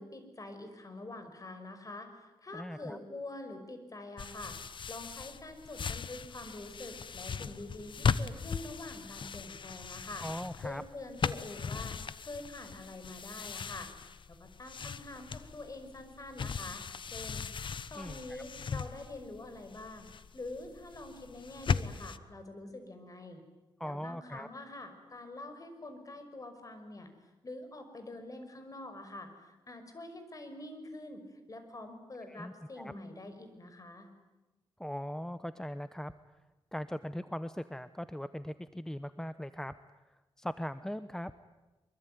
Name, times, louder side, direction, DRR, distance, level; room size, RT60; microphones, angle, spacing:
voice 1, 0.0-4.6 4.9-10.3 10.6-13.9 14.3-17.5 17.9-20.1 20.3-23.4 23.8-27.1 27.4-34.1, left 2 dB, 40° left, 8 dB, 5.6 m, -45 dB
voice 2, 2.5-3.0 10.2-10.8 18.0-18.4 23.8-24.5 32.3-32.9 34.8-36.1 36.7-39.7 40.4-41.3, equal, 5° left, 12 dB, 0.9 m, -40 dB
sound 1, 4.2-22.2, left 6 dB, 60° left, 1.1 m, -38 dB
24.5 x 23.5 x 9.4 m, 1.1 s
cardioid pair, 70°, 9 cm